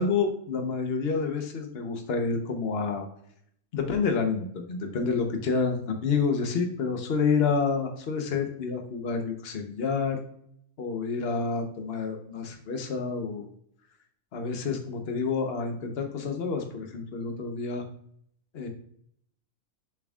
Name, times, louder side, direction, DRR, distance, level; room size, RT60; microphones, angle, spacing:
voice 1, 0.0-3.1 3.7-10.2 10.8-13.5 14.3-17.8 18.5-18.7, left 5 dB, 45° left, 4 dB, 1.1 m, -28 dB
7.0 x 6.2 x 2.4 m, 0.65 s
omnidirectional pair, 1.6 m